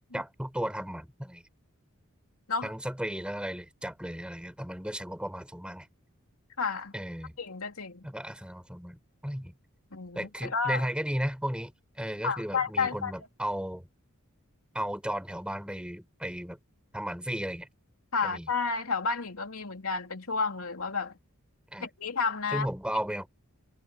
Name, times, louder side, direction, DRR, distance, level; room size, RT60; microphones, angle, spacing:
voice 1, 0.1-1.4 2.6-5.9 6.9-7.3 8.0-9.5 10.2-11.7 12.0-13.9 14.7-16.6 16.9-17.7 18.2-18.5 21.7-21.9 22.5-23.3, equal, 5° right, 5.3 m, -35 dB
voice 2, 6.6-6.9 7.4-8.1 9.9-10.9 12.2-13.1 18.1-21.1 21.8-22.7, left 4 dB, 85° left, 3.0 m, -31 dB
head